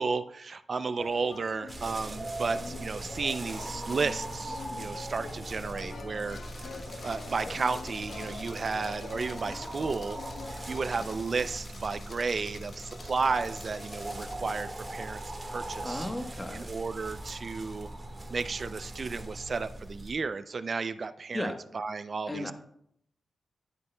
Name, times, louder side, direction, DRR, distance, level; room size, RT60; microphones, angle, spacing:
voice 1, 0.0-6.8 7.0-10.2 10.5-15.2 15.5-16.1 16.5-17.9 18.3-22.5, right 4 dB, 50° right, 13 dB, 0.4 m, -33 dB
sound 1, 1.0-11.2, left 4 dB, 75° left, 0.8 m, -45 dB
sound 2, 1.7-20.1, right 1 dB, 25° right, 1.7 m, -40 dB
sound 3, 6.3-14.4, left 3 dB, 50° left, 0.9 m, -50 dB
voice 2, 15.8-16.7 21.3-21.6 22.3-22.5, left 1 dB, 15° left, 5 dB, 1.1 m, -35 dB
11.5 x 8.1 x 2.2 m, 0.72 s
cardioid pair, 80°, 0 cm